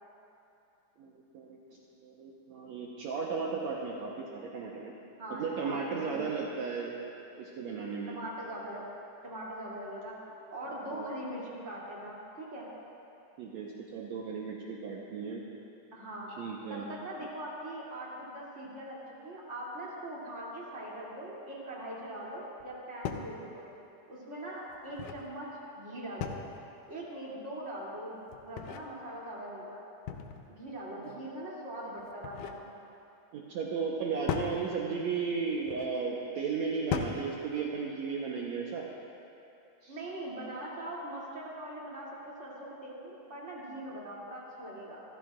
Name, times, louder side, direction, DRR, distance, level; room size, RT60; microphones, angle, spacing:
voice 1, 1.0-4.9 5.3-6.9 7.4-8.2 10.9-11.1 13.4-15.4 16.4-16.9 33.3-38.9 39.8-40.0, right 5 dB, 70° right, -3 dB, 2.1 m, -35 dB
voice 2, 5.2-6.5 8.1-8.8 9.2-12.7 15.9-16.3 16.7-23.6 24.1-25.5 25.8-26.5 26.9-28.2 28.4-29.8 30.5-32.7 39.9-45.0, right 1 dB, 20° right, -6 dB, 2.8 m, -41 dB
sound 1, 22.6-22.7 23.0-23.3 24.7-25.3 26.2-26.7 28.3-28.9 30.1-30.6 32.0-32.6 34.3-34.6 35.6-35.9 36.9-37.3, left 8 dB, 80° left, 2.3 m, -37 dB
27.0 x 15.0 x 2.5 m, 2.7 s
omnidirectional pair, 3.6 m